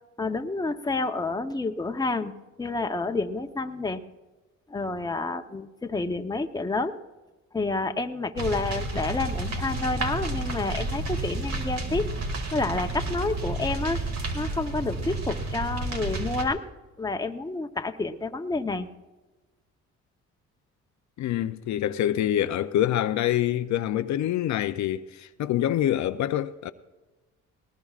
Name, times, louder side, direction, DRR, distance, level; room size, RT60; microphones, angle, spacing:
voice 1, 0.2-2.3 2.6-4.0 4.7-7.0 7.5-12.1 12.5-14.0 14.3-16.6 17.0-18.9, left 3 dB, 15° left, 0.8 m, -29 dB
sound 1, 8.4-16.4, right 2 dB, 60° right, 2.4 m, -31 dB
voice 2, 21.2-26.7, left 12 dB, 70° left, 0.5 m, -26 dB
19.5 x 19.0 x 2.4 m
cardioid pair, 90°, 30 cm